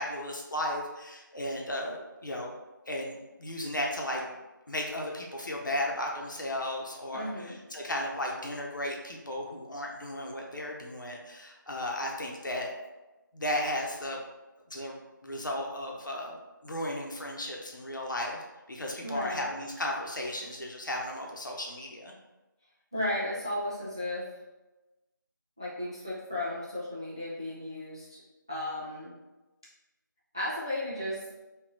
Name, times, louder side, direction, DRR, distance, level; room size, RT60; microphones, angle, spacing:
voice 1, 0.0-2.5 2.9-4.3 4.7-12.7 13.3-14.2 14.7-18.4 18.7-22.1, left 1 dB, 65° left, 0 dB, 0.8 m, -35 dB
voice 2, 7.1-7.6 19.0-19.4 22.9-24.3 25.6-28.2 28.5-29.1 30.3-31.2, left 1 dB, 15° right, -8 dB, 0.3 m, -34 dB
3.5 x 2.3 x 4.0 m, 1.1 s
figure-of-eight pair, 170°, 11 cm